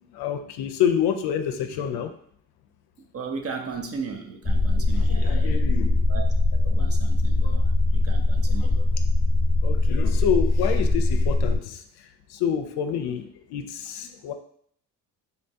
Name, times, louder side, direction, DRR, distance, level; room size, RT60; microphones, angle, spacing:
voice 1, 0.0-2.1 5.0-6.1 7.3-7.6 9.6-14.3, left 8 dB, 65° left, 7 dB, 0.5 m, -28 dB
voice 2, 3.1-5.6 6.1-8.8, right 5 dB, 35° right, 4 dB, 0.5 m, -36 dB
sound 1, 4.4-11.6, left 2 dB, 20° left, 0.8 m, -21 dB
4.1 x 2.2 x 2.6 m, 0.63 s
supercardioid pair, 65°, 42 cm